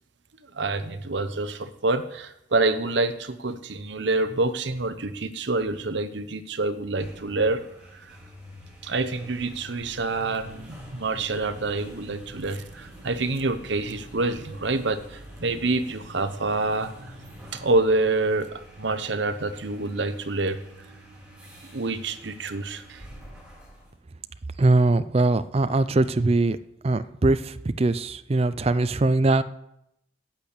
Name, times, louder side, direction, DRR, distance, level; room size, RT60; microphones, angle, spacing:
voice 1, 0.5-7.6 8.1-8.2 8.8-16.9 17.5-20.6 21.7-23.0, right 2 dB, 65° right, 10 dB, 0.9 m, -27 dB
sound 1, 6.8-24.0, equal, 5° right, 3.2 m, -46 dB
voice 2, 24.6-26.6 26.8-29.4, right 2 dB, 30° right, 14 dB, 0.4 m, -21 dB
8.5 x 8.2 x 8.3 m, 0.82 s
head